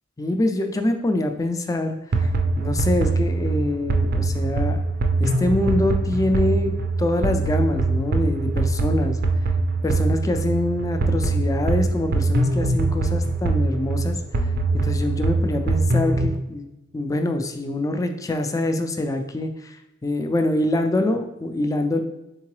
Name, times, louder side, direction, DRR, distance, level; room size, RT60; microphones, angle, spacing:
voice 1, 0.2-4.8 5.2-9.2 9.8-14.2 14.8-16.7 16.9-19.8 20.0-22.0, left 1 dB, 15° left, 7 dB, 0.3 m, -25 dB
sound 1, 2.1-16.3, right 3 dB, 50° right, 0.4 m, -23 dB
3.7 x 3.6 x 3.1 m, 0.91 s
head